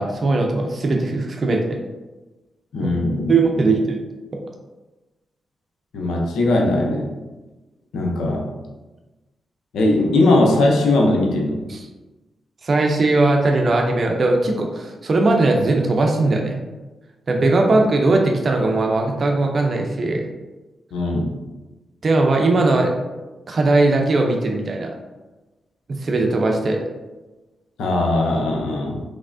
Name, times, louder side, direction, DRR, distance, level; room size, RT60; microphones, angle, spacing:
voice 1, 0.0-1.8 2.8-2.9 3.3-4.0 4.3-4.4 11.7-11.9 12.6-16.6 17.3-20.3 22.0-22.9 23.5-24.9 25.9-26.8, right 2 dB, 55° right, 2 dB, 0.5 m, -19 dB
voice 2, 2.7-3.3 5.9-7.2 7.9-8.5 9.7-11.6 20.9-21.3 27.8-29.0, left 2 dB, 85° left, -1 dB, 0.6 m, -19 dB
3.4 x 3.1 x 2.6 m, 1.1 s
supercardioid pair, 50°, 0 cm